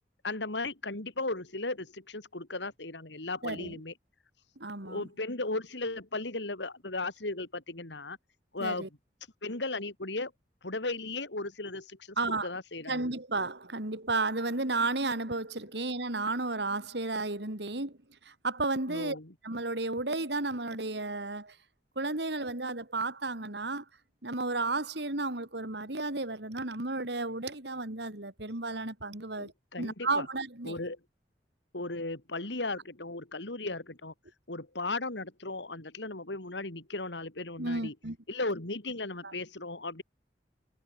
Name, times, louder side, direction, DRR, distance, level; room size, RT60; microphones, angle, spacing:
voice 1, 0.2-3.9 4.8-8.2 8.5-8.9 9.4-10.3 10.6-13.1 18.9-19.3 29.4-30.3 30.6-31.0 31.7-34.1 34.5-37.9 38.3-40.0, left 2 dB, 85° left, 3.4 m, -36 dB
voice 2, 3.4-3.7 4.6-5.0 8.6-8.9 12.2-12.5 12.9-18.0 18.2-19.2 19.4-21.5 21.9-23.8 24.2-29.5 29.8-30.8 37.6-38.2 39.2-39.3, right 3 dB, 70° right, 3.3 m, -33 dB
head